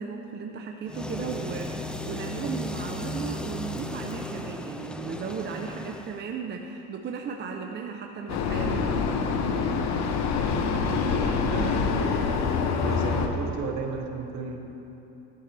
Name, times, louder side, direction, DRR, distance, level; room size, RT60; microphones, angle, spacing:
voice 1, 0.0-9.0, right 5 dB, 30° right, 2 dB, 0.8 m, -35 dB
sound 1, 0.9-6.2, left 1 dB, 5° left, 0.5 m, -35 dB
Vehicle, 8.3-13.3, left 5 dB, 55° left, 1.3 m, -26 dB
voice 2, 10.7-12.2 12.8-14.7, right 4 dB, 55° right, 2 dB, 1.9 m, -34 dB
18.0 x 12.5 x 3.4 m, 3.0 s
cardioid pair, 125°, 33 cm